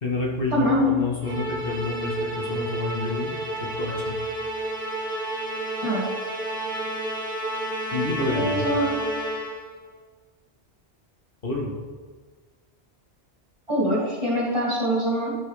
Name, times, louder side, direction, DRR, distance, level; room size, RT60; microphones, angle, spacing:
voice 1, 0.0-4.2 7.9-8.7 11.4-11.7, left 3 dB, 50° left, -2 dB, 1.5 m, -29 dB
voice 2, 0.5-0.9 5.8-6.0 8.2-8.9 13.7-15.4, equal, 25° right, -7 dB, 2.2 m, -24 dB
Musical instrument, 1.2-9.7, right 1 dB, 55° right, 2.6 m, -30 dB
12.5 x 5.5 x 3.3 m, 1.5 s
omnidirectional pair, 1.2 m